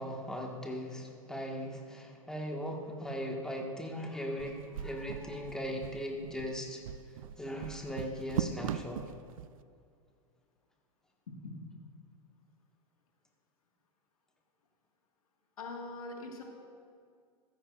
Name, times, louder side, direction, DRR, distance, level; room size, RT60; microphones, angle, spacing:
voice 1, 0.0-6.8 7.1-9.0, equal, 5° left, 0 dB, 1.6 m, -39 dB
sound 1, 4.4-9.5, right 10 dB, 75° right, 0.5 m, -39 dB
voice 2, 15.6-16.4, left 3 dB, 85° left, 1 dB, 1.9 m, -42 dB
14.5 x 14.0 x 2.5 m, 2.2 s
hypercardioid pair, 100°, 18 cm